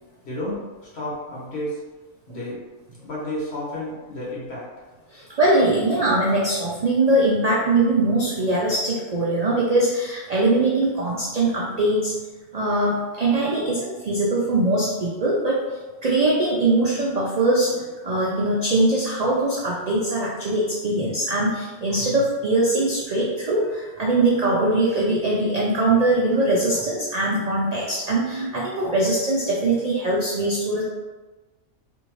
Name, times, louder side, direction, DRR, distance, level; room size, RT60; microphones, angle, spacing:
voice 1, 0.2-0.6 0.9-1.8 2.3-2.6 3.0-4.6, left 1 dB, 55° left, -6 dB, 1.3 m, -31 dB
voice 2, 5.1-12.1 12.5-30.8, right 2 dB, 60° right, -5 dB, 0.4 m, -22 dB
3.5 x 2.6 x 3.0 m, 1.2 s
omnidirectional pair, 1.4 m